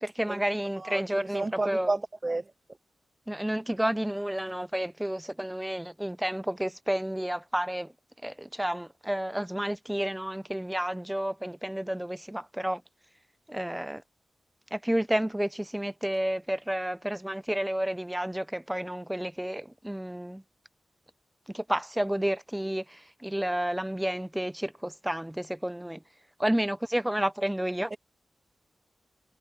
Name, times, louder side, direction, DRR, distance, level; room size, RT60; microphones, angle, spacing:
voice 1, 0.0-1.9 3.3-7.9 8.2-12.8 13.5-14.0 14.7-20.4 21.5-26.0 26.4-28.0, right 1 dB, 10° right, 1.0 m, -31 dB
voice 2, 0.8-2.4 27.9-28.0, right 2 dB, 35° right, 0.5 m, -31 dB
cardioid pair, 50°, 0 cm